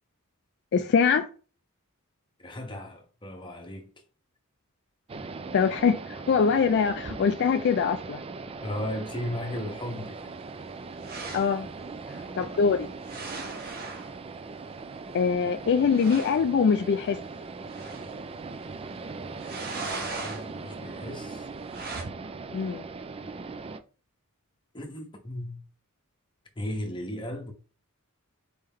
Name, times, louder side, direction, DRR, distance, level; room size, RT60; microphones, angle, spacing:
voice 1, 0.7-1.2 5.5-8.2 11.3-11.7 12.4-12.9 15.1-17.2 22.5-22.8, left 6 dB, 50° left, 0.3 m, -23 dB
voice 2, 2.4-3.9 8.6-10.4 12.6-12.8 19.9-21.5 24.7-25.6 26.5-27.5, left 1 dB, 20° left, 1.0 m, -36 dB
sound 1, 5.1-23.8, right 4 dB, 25° right, 0.3 m, -40 dB
sound 2, 11.0-11.6 13.0-14.1 15.3-15.4 15.6-15.7 15.9-16.4 17.7-18.2 19.4-20.4 21.7-22.0, right 3 dB, 45° right, 1.1 m, -38 dB
4.2 x 3.4 x 3.6 m
head